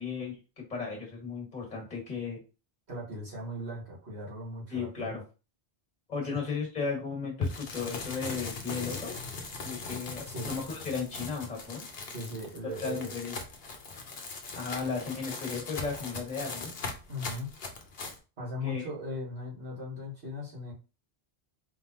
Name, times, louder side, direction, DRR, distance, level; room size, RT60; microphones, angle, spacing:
voice 1, 0.0-2.4 4.7-5.2 6.1-9.2 9.6-11.9 12.6-13.4 14.5-16.7 18.6-18.9, left 5 dB, 40° left, 0 dB, 1.9 m, -35 dB
voice 2, 2.9-5.1 10.2-10.5 12.1-13.1 17.1-17.5 18.4-20.7, left 1 dB, 75° right, -5 dB, 2.4 m, -38 dB
sound 1, 7.4-18.2, left 4 dB, 65° left, 1.1 m, -39 dB
4.3 x 3.7 x 2.9 m, 0.31 s
omnidirectional pair, 1.1 m